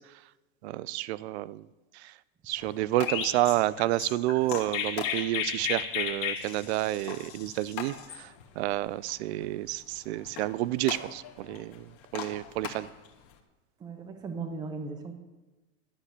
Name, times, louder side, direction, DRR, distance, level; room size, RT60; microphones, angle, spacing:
voice 1, 0.6-1.7 1.9-2.1 2.5-12.9, right 16 dB, 60° right, 19 dB, 0.5 m, -30 dB
sound 1, 2.6-13.4, left 8 dB, 35° left, 1.3 m, -44 dB
Chirp tweet, 3.1-8.2, left 9 dB, 85° left, 2.0 m, -34 dB
voice 2, 13.8-15.1, right 4 dB, 10° right, 7 dB, 0.7 m, -37 dB
11.5 x 5.9 x 8.2 m, 1.2 s
supercardioid pair, 165°, 38 cm